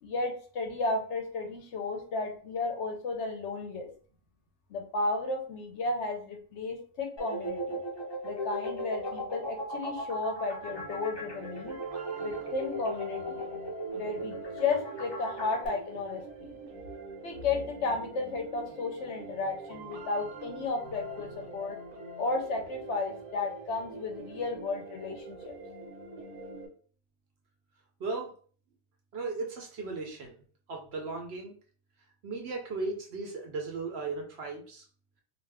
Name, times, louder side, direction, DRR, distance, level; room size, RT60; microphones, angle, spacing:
voice 1, 0.0-3.9 4.7-7.8 8.2-11.8 12.2-13.4 13.9-16.6 17.2-21.8 22.2-25.5, left 3 dB, 65° left, 4 dB, 0.8 m, -33 dB
sound 1, 7.2-15.7, right 1 dB, 35° left, 0.4 m, -37 dB
sound 2, 10.7-26.7, right 2 dB, 80° right, 1.0 m, -44 dB
voice 2, 28.0-28.3 29.1-30.4 30.7-31.5 32.2-34.8, right 3 dB, 60° right, 2 dB, 0.7 m, -36 dB
2.4 x 2.3 x 3.3 m, 0.43 s
omnidirectional pair, 1.4 m